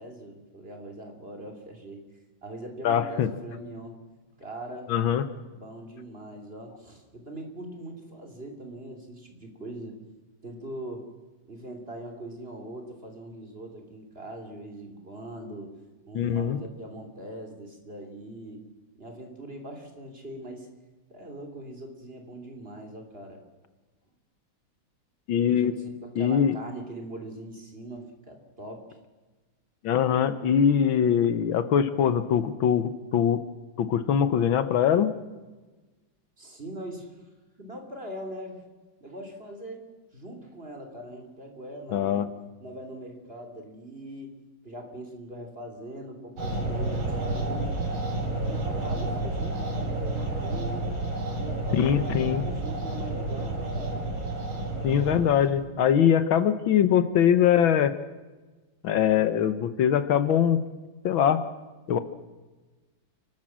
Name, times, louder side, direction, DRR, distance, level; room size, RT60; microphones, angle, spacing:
voice 1, 0.0-2.0 2.4-4.0 4.4-4.9 5.5-10.0 10.4-11.1 11.5-15.7 16.1-18.6 19.0-20.7 21.1-23.4 25.5-28.9 36.4-37.2 37.6-38.6 39.0-39.8 40.1-42.3 42.6-44.4 44.6-47.8 48.4-50.9 51.3-54.1, right 1 dB, 30° right, 3 dB, 3.2 m, -41 dB
voice 2, 2.8-3.3 4.9-5.2 16.1-16.6 25.3-25.7 26.2-26.6 29.8-33.4 33.8-35.1 41.9-42.3 51.7-52.4 54.8-57.9 58.8-60.6 61.0-61.4 61.9-62.0, left 9 dB, 75° left, 12 dB, 1.8 m, -22 dB
sound 1, 46.4-55.6, right 2 dB, 75° right, 4.0 m, -30 dB
29.5 x 12.5 x 7.4 m, 1.2 s
omnidirectional pair, 2.2 m